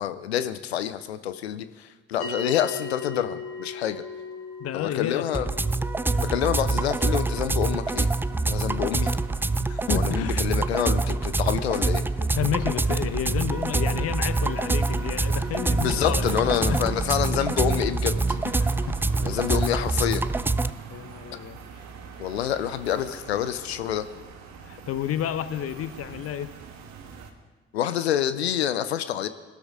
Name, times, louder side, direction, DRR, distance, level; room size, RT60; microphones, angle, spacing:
voice 1, 0.0-4.0 4.7-5.5 6.2-8.1 8.5-9.1 9.9-12.0 15.8-18.4 19.2-20.3 22.2-24.1 27.7-29.3, left 10 dB, 85° left, 13 dB, 0.6 m, -27 dB
sound 1, 2.2-12.7, left 4 dB, 70° left, 5.1 m, -41 dB
voice 2, 4.6-5.5 6.1-6.3 9.6-10.4 10.7-10.8 12.0-16.8 18.5-19.0 20.9-21.6 24.6-26.5, left 10 dB, 50° left, 13 dB, 0.9 m, -31 dB
sound 2, 5.3-20.7, right 3 dB, 5° right, 0.3 m, -25 dB
sound 3, 7.6-27.3, right 6 dB, 60° right, 1.4 m, -42 dB
21.0 x 13.0 x 3.6 m, 1.3 s
figure-of-eight pair, 45°, 31 cm